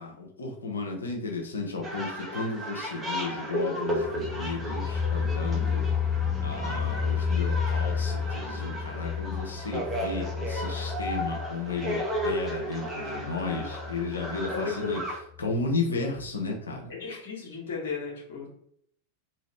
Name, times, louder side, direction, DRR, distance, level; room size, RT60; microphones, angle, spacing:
voice 1, 0.0-5.9 6.4-15.0 15.4-16.9, left 3 dB, 75° left, 0 dB, 0.8 m, -33 dB
sound 1, 1.8-15.2, equal, 15° right, 1.0 m, -34 dB
sound 2, 3.9-14.6 14.9-15.0 15.3-15.4, left 6 dB, 15° left, 0.4 m, -31 dB
voice 2, 14.5-14.9 16.9-18.5, left 5 dB, 55° left, -2 dB, 1.3 m, -34 dB
3.0 x 3.0 x 3.1 m, 0.67 s
figure-of-eight pair, 90°, 0 cm